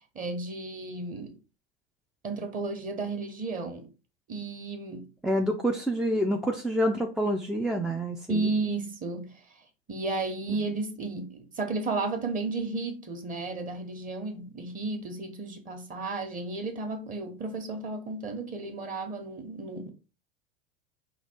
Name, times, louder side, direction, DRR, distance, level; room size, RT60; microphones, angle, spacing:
voice 1, 0.1-1.4 2.2-3.9 4.3-5.1 8.3-9.4 9.9-19.9, right 3 dB, 30° right, 1.1 m, -33 dB
voice 2, 5.2-8.5, equal, ahead, 0.3 m, -27 dB
5.0 x 2.3 x 4.4 m
figure-of-eight pair, 80°, 29 cm